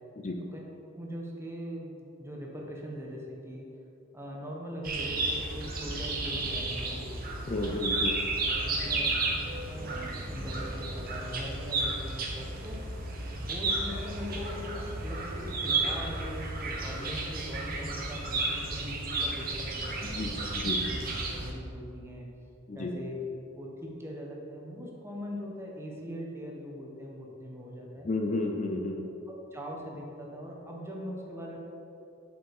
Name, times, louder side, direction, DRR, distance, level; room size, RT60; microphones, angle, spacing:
voice 1, 0.9-3.6 4.1-7.1 7.5-8.0 8.4-9.2 9.5-12.8 13.3-20.5 20.8-21.0 21.3-22.3 22.7-23.2 23.6-28.1 29.3-31.6, equal, 10° right, -2 dB, 1.3 m, -41 dB
sound 1, 4.8-21.5, right 2 dB, 45° right, 1.3 m, -32 dB
voice 2, 7.5-8.2 20.0-20.8 22.7-22.9 28.0-29.1, left 2 dB, 35° left, 3 dB, 0.6 m, -32 dB
7.3 x 5.2 x 7.2 m, 2.8 s
head